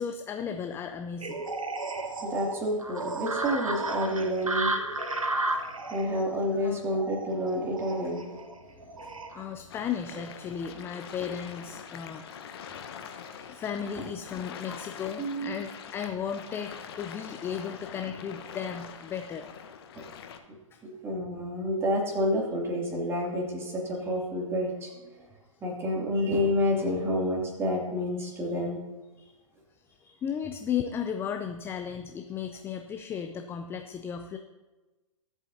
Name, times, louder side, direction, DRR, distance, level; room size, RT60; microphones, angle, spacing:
voice 1, 0.0-1.4 6.5-6.8 9.0-9.1 9.3-12.5 13.1-13.2 13.5-19.5 20.7-20.8 28.2-28.3 29.2-29.3 29.9-34.4, left 8 dB, 15° left, 6 dB, 0.5 m, -35 dB
sound 1, 1.2-9.4, right 2 dB, 75° right, 1.4 m, -33 dB
voice 2, 2.2-4.7 5.9-8.3 14.0-14.1 14.7-14.8 15.2-15.5 19.9-20.1 20.8-25.2 25.6-28.8, equal, 15° right, -2 dB, 2.7 m, -29 dB
sound 2, 9.7-20.4, left 7 dB, 45° left, 1.2 m, -44 dB
24.0 x 8.2 x 2.8 m, 1.2 s
figure-of-eight pair, 120°, 17 cm